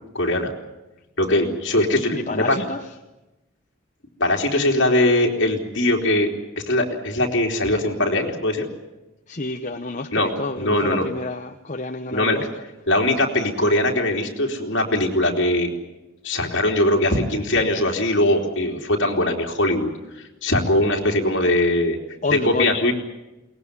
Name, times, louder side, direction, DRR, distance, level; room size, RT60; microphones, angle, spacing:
voice 1, 0.1-0.5 1.2-2.6 4.2-6.3 6.7-8.7 10.1-10.3 10.6-11.0 12.1-12.4 12.9-15.7 16.2-19.9 20.2-22.0 22.3-22.9, left 1 dB, 60° left, 1 dB, 3.5 m, -21 dB
voice 2, 2.1-2.8 9.3-12.5 22.2-22.7, left 2 dB, 35° left, 5 dB, 0.9 m, -29 dB
22.5 x 19.5 x 9.8 m, 1.0 s
head